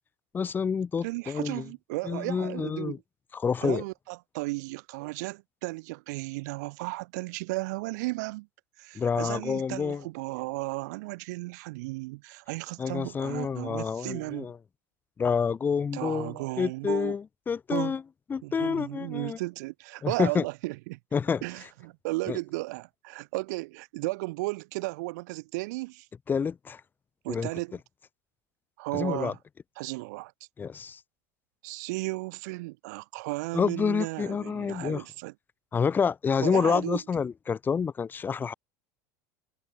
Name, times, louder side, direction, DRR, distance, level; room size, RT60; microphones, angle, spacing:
voice 1, 0.3-1.6 2.0-3.0 3.3-3.8 9.0-10.0 12.8-14.6 15.2-18.0 18.3-19.4 20.0-20.4 21.1-21.4 22.3-22.4 26.3-26.8 27.3-27.5 28.9-29.3 30.6-31.0 33.5-35.0 35.7-38.5, left 6 dB, 20° left, 1.8 m, -28 dB
voice 2, 1.0-3.0 3.6-8.5 8.8-14.5 15.9-17.1 17.7-18.0 18.4-21.0 21.4-26.1 27.2-27.8 28.8-29.4 29.8-30.3 31.6-35.3 36.4-37.0, right 23 dB, 75° right, 2.8 m, -34 dB
supercardioid pair, 140°, 9 cm